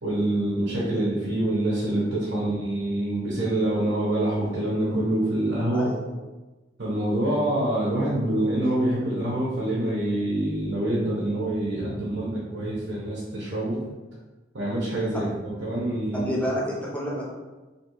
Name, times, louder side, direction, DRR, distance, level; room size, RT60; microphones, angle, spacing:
voice 1, 0.0-5.9 6.8-13.8 14.5-16.3, right 1 dB, 70° right, -8 dB, 0.9 m, -26 dB
voice 2, 16.2-17.3, equal, 5° left, -5 dB, 0.7 m, -28 dB
3.3 x 2.9 x 3.0 m, 1.2 s
head